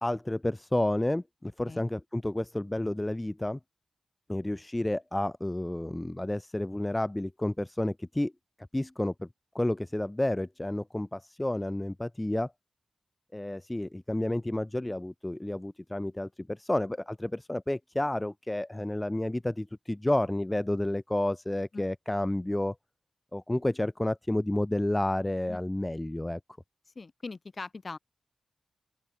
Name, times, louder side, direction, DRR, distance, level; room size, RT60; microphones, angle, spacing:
voice 1, 0.0-3.6 4.3-8.3 8.7-9.3 9.5-12.5 13.3-22.7 23.3-26.4, left 1 dB, 15° left, 0.9 m, -30 dB
voice 2, 27.0-28.0, left 3 dB, 50° left, 7.1 m, -41 dB
open air
cardioid pair, 55°, 0 cm